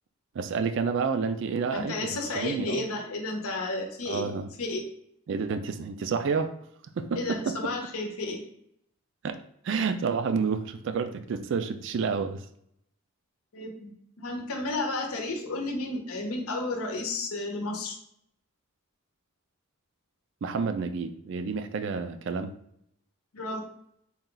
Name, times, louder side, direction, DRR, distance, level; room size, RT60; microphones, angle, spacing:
voice 1, 0.3-2.9 4.1-4.5 5.3-6.5 7.0-7.6 9.2-9.4 9.6-12.4 20.4-22.5, right 5 dB, 55° right, 9 dB, 0.3 m, -29 dB
voice 2, 1.7-4.3 4.6-4.8 7.1-8.4 13.5-18.0 23.3-23.6, left 2 dB, 80° left, 2 dB, 0.7 m, -32 dB
4.2 x 2.3 x 3.8 m, 0.72 s
head